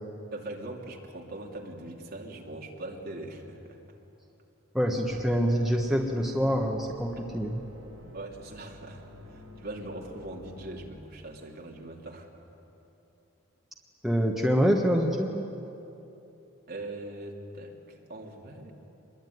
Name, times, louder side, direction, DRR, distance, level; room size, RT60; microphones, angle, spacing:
voice 1, 0.3-4.0 8.1-12.4 16.7-18.7, right 2 dB, 45° right, 0 dB, 3.0 m, -41 dB
voice 2, 4.7-7.6 14.0-15.5, equal, ahead, -1 dB, 1.4 m, -26 dB
sound 1, 5.1-10.8, left 1 dB, 70° right, 5.4 m, -49 dB
25.0 x 22.0 x 9.5 m, 2.9 s
head